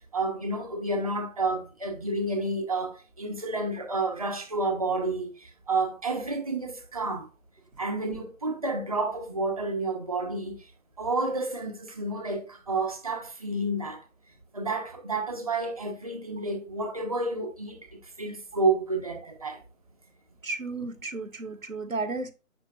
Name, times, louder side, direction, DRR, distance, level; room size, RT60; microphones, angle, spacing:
voice 1, 0.1-7.3 7.8-10.6 11.0-14.0 14.5-17.8 18.2-19.6, right 2 dB, 25° right, 1.2 m, -30 dB
voice 2, 20.4-22.3, right 3 dB, 70° right, 1.5 m, -33 dB
8.1 x 6.1 x 2.5 m
figure-of-eight pair, 160°, 42 cm